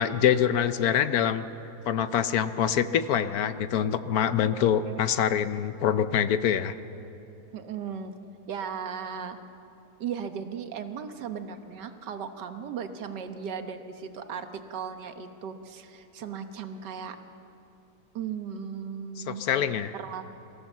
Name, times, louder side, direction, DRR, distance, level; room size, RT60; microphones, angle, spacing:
voice 1, 0.0-1.5 1.9-6.7 19.3-19.9, left 9 dB, 70° left, 12 dB, 1.1 m, -25 dB
voice 2, 4.6-5.0 7.5-8.1 8.5-9.4 10.0-17.2 18.2-19.4 19.9-20.2, right 7 dB, 85° right, 8 dB, 1.7 m, -36 dB
24.0 x 15.0 x 7.3 m, 2.8 s
omnidirectional pair, 1.8 m